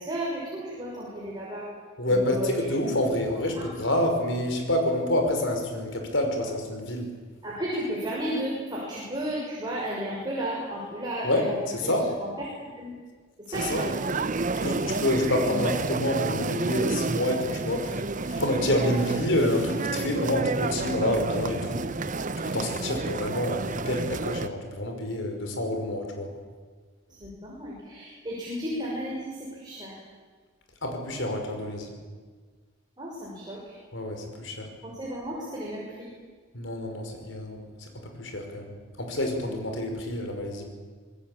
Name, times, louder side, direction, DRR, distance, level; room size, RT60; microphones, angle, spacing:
voice 1, 0.0-1.7 2.1-2.7 3.3-3.7 7.4-11.6 11.8-11.9 12.2-12.5 12.7-12.9 13.5-14.0 18.8-19.0 27.2-29.9 33.0-33.8 34.8-36.1, equal, 20° right, -4 dB, 6.2 m, -33 dB
voice 2, 2.0-7.1 11.2-12.1 13.5-13.8 14.6-21.9 22.4-26.3 30.8-31.9 33.9-34.7 36.5-38.7 39.0-40.6, left 1 dB, 70° left, 4 dB, 5.6 m, -28 dB
sound 1, 13.5-24.5, right 3 dB, 40° right, 0.8 m, -30 dB
26.5 x 20.0 x 8.9 m, 1.5 s
head